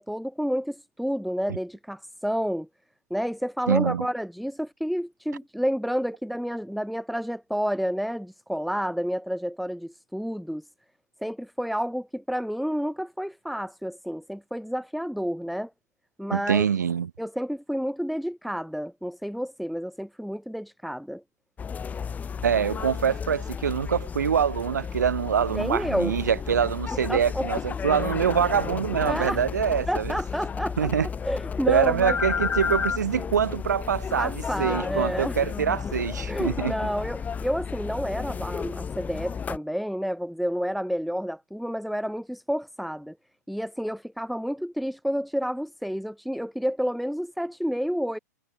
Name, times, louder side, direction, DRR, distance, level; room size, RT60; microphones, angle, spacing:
voice 1, 0.0-2.7 3.1-10.7 11.2-15.7 16.2-16.7 17.2-21.2 25.5-26.2 27.1-27.5 29.0-29.4 29.9-32.2 34.2-35.4 36.3-43.1 43.5-48.2, equal, ahead, 1.4 m, -30 dB
voice 2, 3.7-4.0 16.3-17.1 22.4-30.1 30.8-31.1 31.7-34.3 34.6-36.7, right 7 dB, 80° right, 1.4 m, -25 dB
sound 1, 21.6-39.6, left 6 dB, 15° left, 3.1 m, -32 dB
hypercardioid pair, 115°, 9 cm